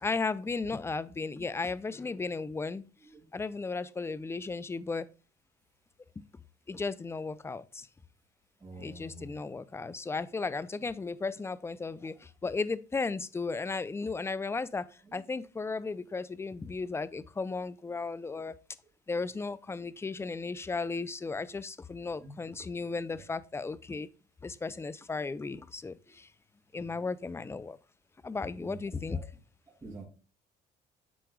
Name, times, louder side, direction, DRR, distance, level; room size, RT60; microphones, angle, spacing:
voice 1, 0.0-2.9 3.3-5.1 6.2-6.3 6.7-7.9 8.8-14.9 15.1-18.5 19.1-24.1 24.4-26.3 26.7-27.8 28.2-29.2, left 4 dB, 15° left, 0.5 m, -35 dB
voice 2, 1.1-1.4 3.0-3.3 8.6-9.4 15.1-15.2 22.2-22.3 23.1-23.2 28.6-28.8 29.1-29.2 29.8-30.0, right 1 dB, 20° right, 2.9 m, -47 dB
10.0 x 4.5 x 2.3 m
cardioid pair, 110°, 17 cm